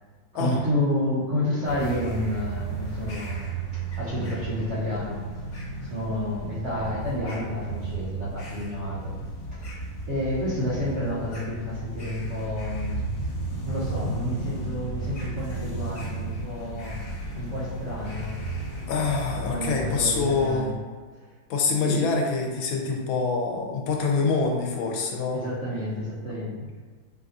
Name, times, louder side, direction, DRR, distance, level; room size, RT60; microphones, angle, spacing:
voice 1, 0.3-3.5 3.7-5.2 5.8-9.2 9.5-9.7 10.1-13.3 13.6-17.0 17.3-18.4 19.5-20.8 21.8-22.0 25.3-26.8, left 1 dB, 45° right, -9 dB, 1.1 m, -30 dB
sound 1, 1.6-20.5, right 2 dB, 65° left, 1.6 m, -34 dB
voice 2, 18.9-20.7 21.5-25.4, left 4 dB, 85° left, 1 dB, 1.4 m, -25 dB
5.8 x 2.3 x 2.6 m, 1.5 s
omnidirectional pair, 2.1 m